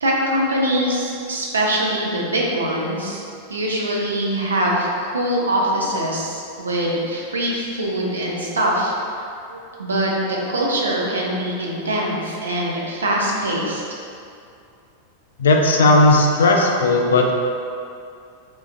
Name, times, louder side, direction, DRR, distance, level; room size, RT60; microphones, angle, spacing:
voice 1, 0.0-3.2 3.5-8.9 9.5-10.1 10.5-13.8, right 1 dB, 70° right, -3 dB, 0.5 m, -23 dB
voice 2, 15.4-17.3, left 2 dB, 65° left, 2 dB, 0.3 m, -15 dB
3.8 x 2.4 x 2.4 m, 2.4 s
figure-of-eight pair, 90°, 0 cm